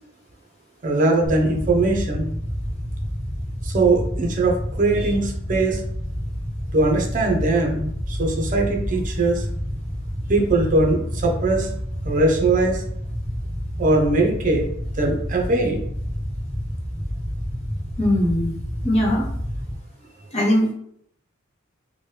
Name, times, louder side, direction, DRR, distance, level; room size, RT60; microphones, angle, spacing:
voice 1, 0.8-2.3 3.6-5.8 6.7-9.5 10.3-11.7 12.0-12.8 13.8-14.6 15.0-15.8, right 2 dB, 40° right, 1 dB, 0.6 m, -21 dB
sound 1, 1.2-19.7, equal, 5° left, 0.5 m, -29 dB
voice 2, 18.0-18.6 18.8-19.3 20.3-20.7, left 1 dB, 35° left, -4 dB, 0.7 m, -20 dB
3.0 x 2.2 x 3.2 m, 0.70 s
head